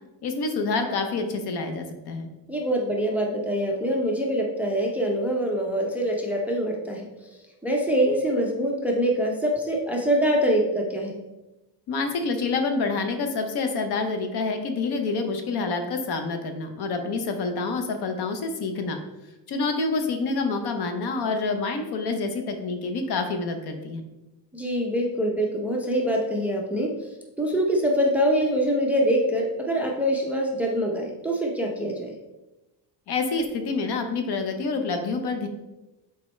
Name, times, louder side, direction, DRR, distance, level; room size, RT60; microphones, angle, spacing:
voice 1, 0.2-2.3 11.9-19.0 19.5-24.0 33.1-35.5, left 3 dB, 60° left, 6 dB, 0.9 m, -27 dB
voice 2, 2.5-7.1 7.6-11.2 24.5-27.1 27.4-32.1, equal, 5° right, 0 dB, 0.5 m, -24 dB
7.1 x 4.4 x 3.2 m, 1.0 s
cardioid pair, 155°, 44 cm